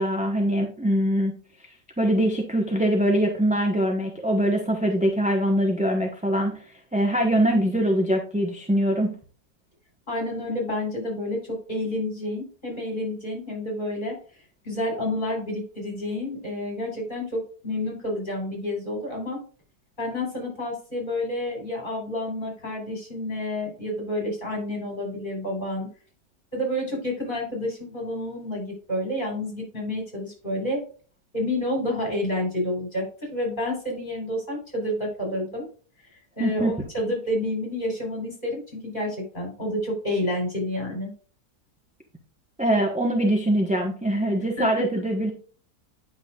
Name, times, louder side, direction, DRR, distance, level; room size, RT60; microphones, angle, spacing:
voice 1, 0.0-1.3 2.0-6.6 6.9-9.2 36.4-36.8 42.6-45.3, right 1 dB, 5° right, 1 dB, 0.9 m, -23 dB
voice 2, 10.1-14.2 14.6-19.4 20.0-25.9 26.5-30.8 31.3-35.7 36.1-41.1 44.6-44.9, left 1 dB, 30° left, -1 dB, 4.5 m, -29 dB
9.7 x 6.0 x 2.4 m, 0.39 s
omnidirectional pair, 1.7 m